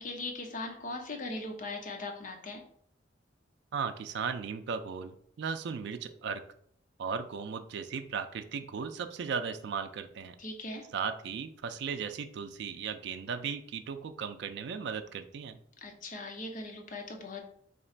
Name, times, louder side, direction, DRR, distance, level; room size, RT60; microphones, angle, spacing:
voice 1, 0.0-2.6 10.4-10.9 15.8-17.4, left 2 dB, 45° left, 3 dB, 0.6 m, -39 dB
voice 2, 3.7-6.4 7.0-10.4 10.9-15.6, right 6 dB, 65° right, 9 dB, 0.3 m, -36 dB
3.0 x 2.4 x 4.3 m, 0.64 s
head